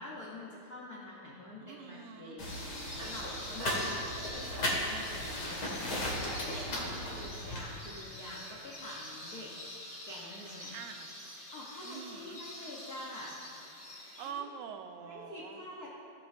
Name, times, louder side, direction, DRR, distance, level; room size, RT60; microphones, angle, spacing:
voice 1, 0.0-3.9 4.3-9.5 10.1-10.7 11.5-13.4 14.2-14.5 15.0-15.9, left 1 dB, 75° left, -5 dB, 0.8 m, -46 dB
voice 2, 1.6-2.4 3.5-4.2 6.7-7.3 10.7-11.1 11.8-12.4 13.9-15.6, right 7 dB, 90° right, 7 dB, 2.0 m, -46 dB
sound 1, 2.4-7.6, left 1 dB, 40° left, 2.2 m, -36 dB
sound 2, 2.5-14.3, left 1 dB, 20° left, 2.3 m, -46 dB
16.5 x 7.1 x 2.7 m, 2.8 s
omnidirectional pair, 3.3 m